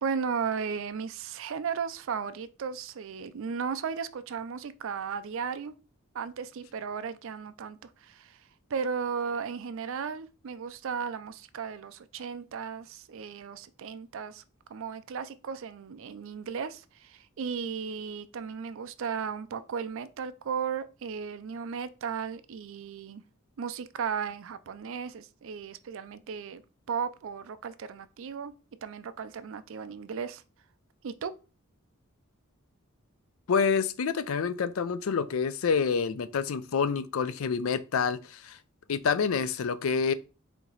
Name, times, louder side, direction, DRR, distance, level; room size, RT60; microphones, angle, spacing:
voice 1, 0.0-5.7 6.1-8.4 8.7-14.4 14.7-23.2 23.6-26.6 26.9-28.5 28.8-30.4 31.0-31.3, right 6 dB, 65° right, 0.4 m, -35 dB
voice 2, 33.5-38.6 38.9-40.1, left 6 dB, 75° left, 0.4 m, -27 dB
4.5 x 2.8 x 3.9 m
head